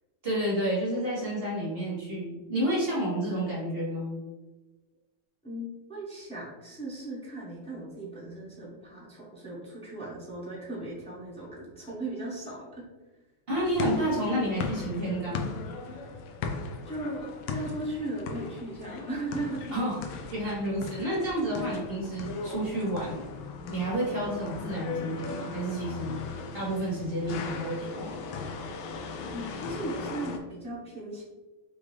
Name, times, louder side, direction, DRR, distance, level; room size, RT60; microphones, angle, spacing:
voice 1, 0.2-4.2 13.5-15.5 19.7-23.2 23.7-26.2 26.5-28.1, right 1 dB, 30° right, -8 dB, 1.4 m, -30 dB
voice 2, 5.4-12.8 16.8-19.7 29.3-31.2, right 2 dB, 10° left, -6 dB, 0.3 m, -37 dB
sound 1, 13.6-30.4, left 4 dB, 80° left, 1.3 m, -38 dB
4.9 x 2.6 x 3.2 m, 1.2 s
omnidirectional pair, 2.3 m